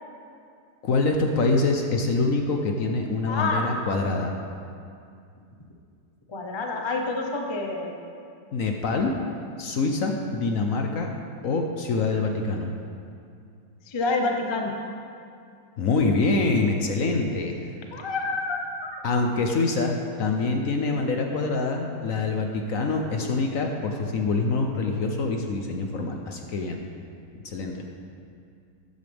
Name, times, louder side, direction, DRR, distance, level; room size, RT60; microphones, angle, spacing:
voice 1, 0.8-4.3 8.5-9.1 9.6-11.1 11.4-12.7 15.8-17.6 19.0-26.8 27.4-27.8, left 3 dB, 60° left, 3 dB, 1.0 m, -25 dB
voice 2, 3.3-3.7 6.3-7.9 13.9-14.7 17.9-19.0, left 3 dB, 25° left, 1 dB, 0.6 m, -28 dB
13.0 x 9.2 x 3.5 m, 2.4 s
omnidirectional pair, 1.8 m